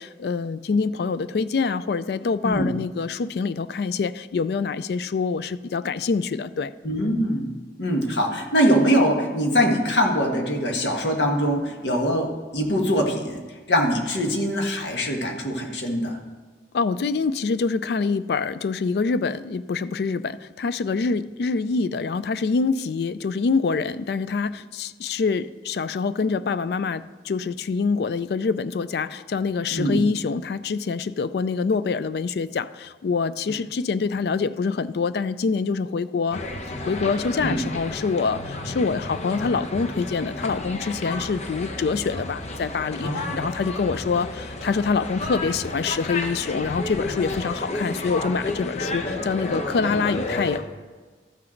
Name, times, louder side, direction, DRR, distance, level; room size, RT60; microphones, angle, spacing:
voice 1, 0.0-6.7 16.7-36.4 36.9-50.6, left 4 dB, 65° left, 15 dB, 0.3 m, -25 dB
voice 2, 6.8-7.5 7.8-13.4 13.7-16.2 29.7-30.0 37.4-37.6 43.0-43.4, equal, 90° left, 2 dB, 1.6 m, -23 dB
sound 1, 36.3-50.6, left 2 dB, 40° left, 0.9 m, -32 dB
13.5 x 6.3 x 4.4 m, 1.4 s
head